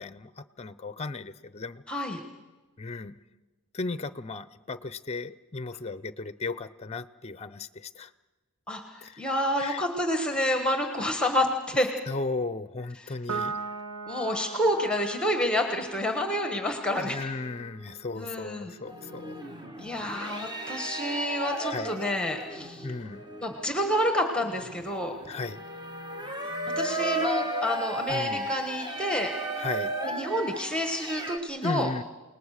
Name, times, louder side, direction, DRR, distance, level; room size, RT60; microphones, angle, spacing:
voice 1, 0.0-1.8 2.8-3.2 3.7-8.1 9.0-9.2 9.6-9.8 12.1-13.6 16.9-19.5 21.6-22.0 22.8-23.2 25.3-25.6 28.1-28.5 29.6-29.9 31.6-32.0, left 3 dB, 30° left, 15 dB, 0.6 m, -35 dB
voice 2, 1.9-2.2 8.7-11.9 13.0-13.5 14.1-17.3 18.2-18.7 19.8-22.9 23.4-25.1 26.8-29.3 30.0-31.9, left 1 dB, 5° left, 5 dB, 1.3 m, -29 dB
Piano, 13.3-20.0, right 5 dB, 85° right, 1.0 m, -40 dB
sound 1, 18.8-31.4, right 1 dB, 20° right, 1.7 m, -35 dB
29.0 x 19.0 x 6.5 m, 1.2 s
head